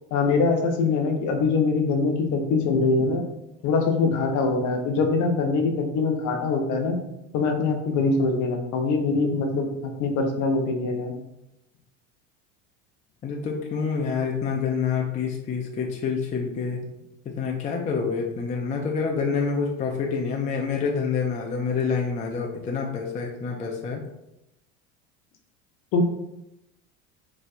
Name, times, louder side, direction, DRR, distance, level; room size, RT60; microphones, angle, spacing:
voice 1, 0.1-3.3 3.6-7.0 7.3-9.7 10.0-11.1 25.9-26.0, left 4 dB, 50° left, 4 dB, 0.7 m, -23 dB
voice 2, 13.2-16.8 17.3-24.0, left 5 dB, 20° left, 0 dB, 0.4 m, -27 dB
3.1 x 2.7 x 2.5 m, 0.88 s
hypercardioid pair, 85°, 38 cm